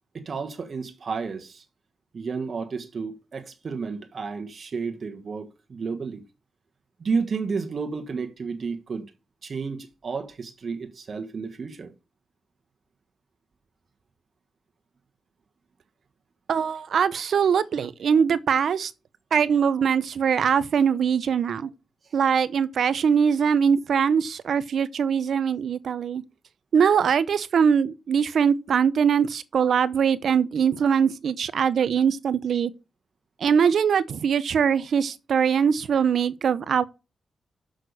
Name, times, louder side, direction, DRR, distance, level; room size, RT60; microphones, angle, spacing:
voice 1, 0.1-1.6 2.1-6.2 7.0-9.1 9.4-11.9 22.0-22.2, right 5 dB, 55° right, 1.4 m, -31 dB
voice 2, 16.5-18.9 19.3-21.7 22.1-26.2 26.7-32.7 33.4-36.9, right 7 dB, 70° right, 0.7 m, -22 dB
6.4 x 6.1 x 6.8 m
cardioid pair, 70°, 0 cm